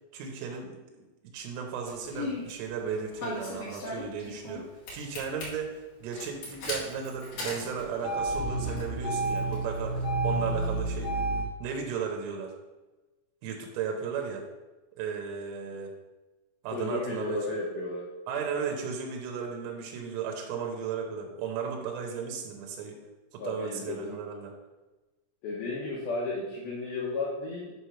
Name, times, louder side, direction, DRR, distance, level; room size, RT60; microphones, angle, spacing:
voice 1, 0.1-0.8 1.3-11.2 11.6-12.5 13.4-14.5 15.0-15.9 16.6-17.5 18.3-23.0 23.3-24.5, right 6 dB, 85° right, 2 dB, 3.4 m, -35 dB
Engine starting, 1.9-2.5 3.2-4.6 4.9-5.4 6.1-11.4, right 1 dB, 55° left, 3.1 m, -31 dB
voice 2, 16.7-18.1 23.4-24.2 25.4-27.7, left 3 dB, 75° left, -5 dB, 2.3 m, -33 dB
8.5 x 3.2 x 5.7 m, 1.1 s
omnidirectional pair, 5.5 m